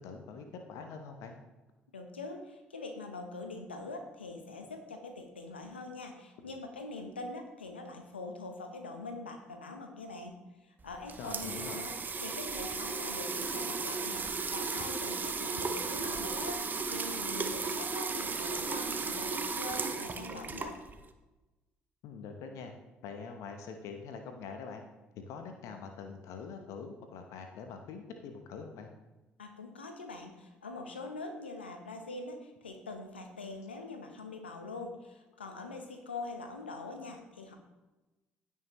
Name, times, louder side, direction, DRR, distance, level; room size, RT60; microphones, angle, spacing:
voice 1, 0.0-1.4 6.4-6.6 11.2-11.9 22.0-22.7 23.0-24.8 25.1-28.9, left 5 dB, 65° left, 5 dB, 1.0 m, -44 dB
voice 2, 1.9-10.3 10.6-11.9 12.2-14.3 14.5-20.8 29.4-37.6, left 3 dB, 90° left, 5 dB, 1.0 m, -43 dB
sound 1, 10.8-21.1, right 4 dB, 35° right, 0.9 m, -35 dB
16.0 x 5.7 x 3.1 m, 1.1 s
figure-of-eight pair, 50°, 6 cm